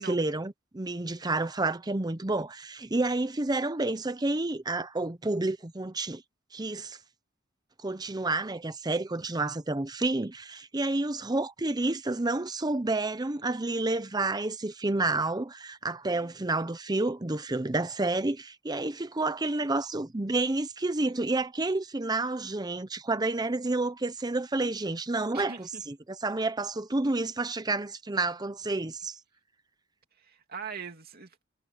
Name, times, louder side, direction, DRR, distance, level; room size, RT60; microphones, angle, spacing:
voice 1, 0.0-6.2 6.5-7.0 7.8-29.2, right 2 dB, 20° right, 0.7 m, -30 dB
voice 2, 25.3-25.8 30.2-31.4, right 6 dB, 50° right, 2.7 m, -41 dB
head